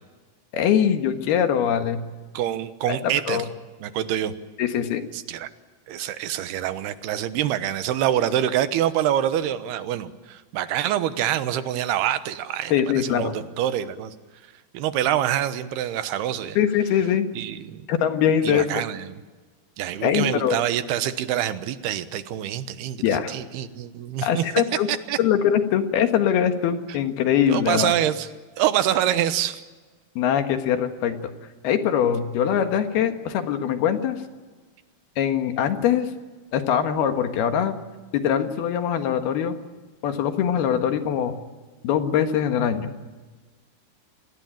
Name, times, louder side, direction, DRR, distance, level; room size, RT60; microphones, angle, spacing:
voice 1, 0.5-2.0 2.9-3.0 3.3-3.5 4.6-5.0 12.7-13.3 16.6-17.3 17.9-18.7 20.0-20.6 23.0-23.3 24.2-24.9 25.2-27.9 30.2-31.2 31.6-34.2 35.2-36.1 36.5-37.8 38.1-39.6 40.0-41.3 41.8-42.9, left 9 dB, 75° left, 7 dB, 3.5 m, -22 dB
voice 2, 2.3-3.4 3.8-4.3 5.1-5.5 5.9-14.1 14.7-16.6 17.4-17.8 18.4-19.2 19.8-24.4 24.9-25.2 27.5-28.3 28.6-29.6, right 11 dB, 85° right, 12 dB, 3.2 m, -26 dB
28.0 x 19.5 x 9.0 m, 1.3 s
omnidirectional pair, 4.5 m